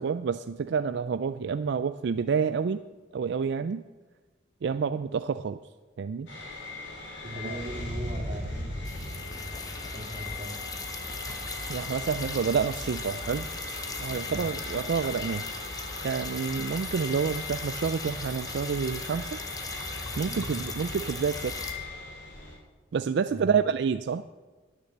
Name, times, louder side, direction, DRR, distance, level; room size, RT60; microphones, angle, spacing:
voice 1, 0.0-2.8 3.1-3.8 4.6-5.6 6.0-6.3 7.4-7.6 11.7-13.5 14.0-15.4 16.0-19.4 20.2-21.6 22.9-24.2, right 6 dB, 65° right, 11 dB, 0.4 m, -28 dB
sound 1, 6.3-22.5, left 2 dB, 75° left, 3.9 m, -39 dB
voice 2, 7.2-10.6 14.2-14.5 20.2-20.7 23.3-23.7, equal, 30° right, -1 dB, 2.9 m, -40 dB
sound 2, 8.8-21.7, left 3 dB, 20° left, 1.2 m, -38 dB
9.9 x 9.8 x 7.8 m, 1.3 s
head